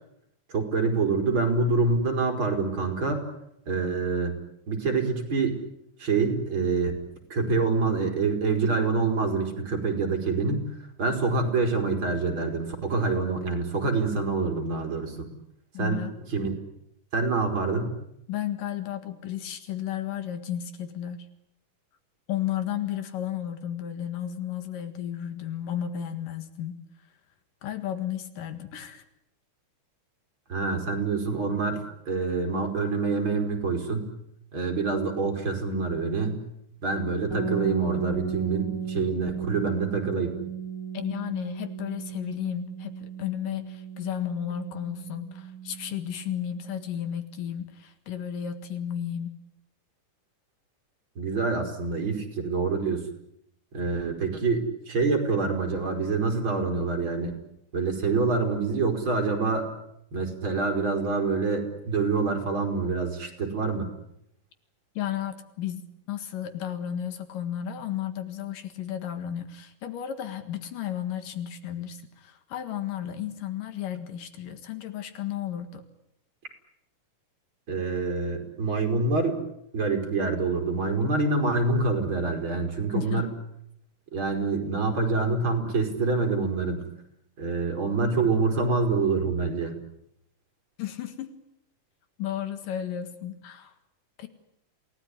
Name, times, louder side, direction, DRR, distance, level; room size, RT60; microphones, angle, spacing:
voice 1, 0.5-3.2 3.7-4.4 4.7-5.6 6.0-7.0 7.3-10.6 11.0-15.3 15.8-16.0 16.3-16.6 17.1-17.9 30.5-34.1 34.5-36.4 36.8-40.4 51.2-53.0 53.7-57.3 57.7-59.7 60.1-63.9 77.7-79.4 79.7-83.3 84.1-86.8 87.4-89.7, right 4 dB, 35° right, 3 dB, 5.0 m, -26 dB
voice 2, 15.7-16.1 18.3-21.3 22.3-26.8 27.6-29.0 40.9-49.4 64.9-75.8 82.9-83.3 90.8-91.4 92.2-93.7 94.2-94.3, left 10 dB, 85° left, 9 dB, 3.4 m, -33 dB
sound 1, 37.3-47.0, right 6 dB, 10° left, 2.3 m, -36 dB
28.0 x 19.0 x 9.9 m, 0.78 s
omnidirectional pair, 3.8 m